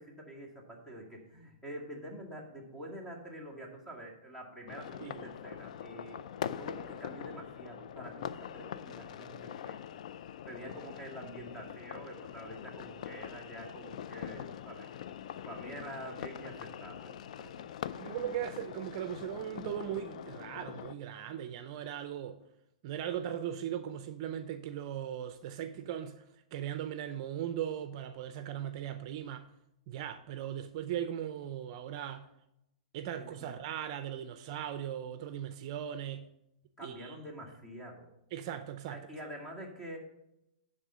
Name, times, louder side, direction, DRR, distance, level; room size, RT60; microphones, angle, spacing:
voice 1, 0.0-9.8 10.5-14.9 15.5-17.7 33.2-33.5 36.8-38.1 38.9-40.0, right 1 dB, 10° left, 2.0 m, -46 dB
sound 1, 4.7-20.9, left 9 dB, 65° left, 0.4 m, -43 dB
voice 2, 18.0-22.4 22.8-26.2 26.5-29.4 29.9-32.3 32.9-36.3 36.8-37.2 38.3-39.0, right 10 dB, 45° right, 0.5 m, -38 dB
10.0 x 3.7 x 6.6 m
hypercardioid pair, 135°, 4 cm